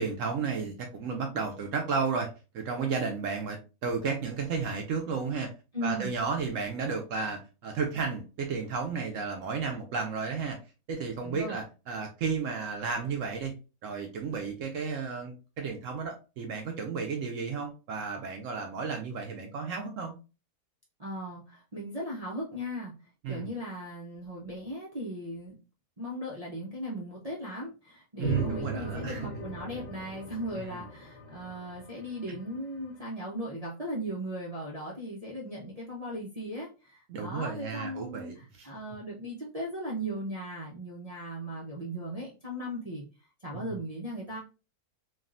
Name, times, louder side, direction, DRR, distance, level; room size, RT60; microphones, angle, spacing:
voice 1, 0.0-2.3 2.5-5.5 5.8-10.6 10.9-13.5 13.8-20.1 23.2-23.5 28.2-29.3 30.6-30.8 37.1-38.7 43.5-43.8, right 5 dB, 65° right, 4 dB, 0.8 m, -33 dB
voice 2, 5.7-6.1 11.2-11.6 21.0-22.9 23.3-25.6 26.0-43.0 43.4-44.4, equal, 50° right, -5 dB, 0.4 m, -37 dB
sound 1, 28.2-32.9, equal, 75° left, 1.2 m, -38 dB
3.5 x 2.3 x 2.4 m, 0.32 s
omnidirectional pair, 1.7 m